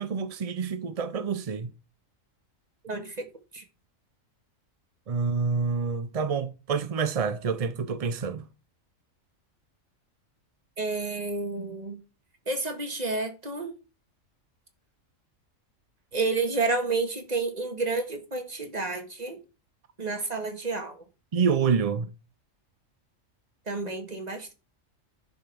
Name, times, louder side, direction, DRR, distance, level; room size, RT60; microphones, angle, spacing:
voice 1, 0.0-1.7 5.1-8.4 21.3-22.1, right 5 dB, 50° right, 0.4 m, -27 dB
voice 2, 2.8-3.2 3.5-3.6 10.8-12.0 12.5-13.7 16.1-19.4 20.0-21.0 23.7-24.5, right 3 dB, 30° right, 1.8 m, -30 dB
10.5 x 5.2 x 6.0 m
omnidirectional pair, 1.4 m